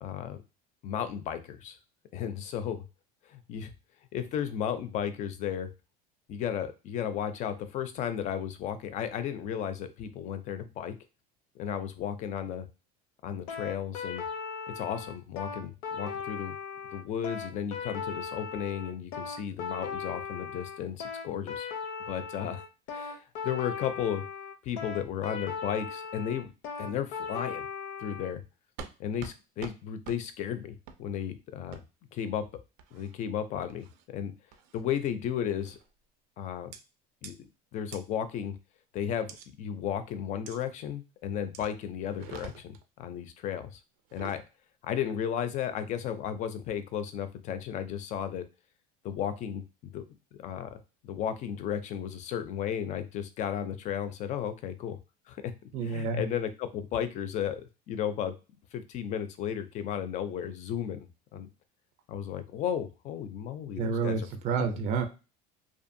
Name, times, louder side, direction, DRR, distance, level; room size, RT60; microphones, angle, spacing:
voice 1, 0.0-0.4 0.8-1.8 2.1-2.8 3.3-3.7 4.1-5.7 6.3-11.0 11.6-12.7 13.2-14.2 14.7-16.6 16.9-21.7 22.1-22.6 22.9-24.2 24.6-26.5 26.8-27.7 28.0-28.4 29.0-31.8 32.1-32.4 32.9-34.3 34.7-35.8 36.4-36.7 37.2-38.6 38.9-43.8 44.1-44.4 44.8-48.4 49.0-50.0 50.4-55.0 55.3-55.5 55.8-57.6 57.9-58.3 58.7-61.5 62.1-64.3 64.6-64.7, left 9 dB, 40° left, 11 dB, 0.4 m, -34 dB
sound 1, 13.5-28.3, left 6 dB, 85° left, 0.6 m, -38 dB
sound 2, 28.8-28.9 29.2-29.4 29.6-29.8 30.0-30.2 30.9-31.0 31.7-31.8 32.8-33.1 33.7-34.0 34.5-34.8 35.6-35.9 36.7-36.8 37.2-37.3 37.9-38.0 39.3-39.5 40.5-40.6 41.5-41.7 42.1-42.8 44.0-44.4, right 7 dB, 90° right, 0.5 m, -45 dB
voice 2, 55.7-56.2 63.8-65.1, right 5 dB, 35° right, 6 dB, 0.4 m, -29 dB
2.6 x 2.3 x 2.6 m, 0.30 s
cardioid pair, 140°, 20 cm